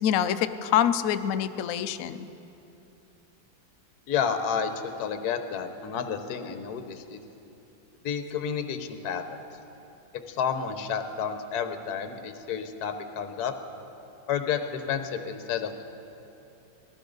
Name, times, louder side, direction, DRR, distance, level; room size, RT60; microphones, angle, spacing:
voice 1, 0.0-2.3, left 10 dB, 80° left, 10 dB, 0.7 m, -25 dB
voice 2, 4.1-7.2 8.0-9.4 10.3-13.5 14.3-15.9, left 7 dB, 60° left, 7 dB, 1.3 m, -30 dB
20.0 x 15.0 x 3.9 m, 2.8 s
omnidirectional pair, 2.1 m